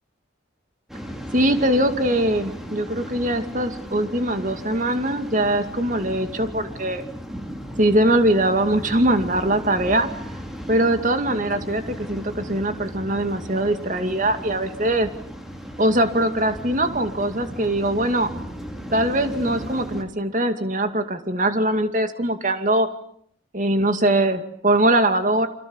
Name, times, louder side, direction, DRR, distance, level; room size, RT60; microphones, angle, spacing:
Waves surf, 0.9-20.0, equal, ahead, 3.9 m, -36 dB
voice 1, 1.3-7.0 7.8-10.1 10.7-15.1 15.8-18.3 18.9-22.9 23.5-25.5, right 1 dB, 40° right, 8 dB, 2.4 m, -22 dB
29.0 x 27.0 x 7.3 m, 0.65 s
head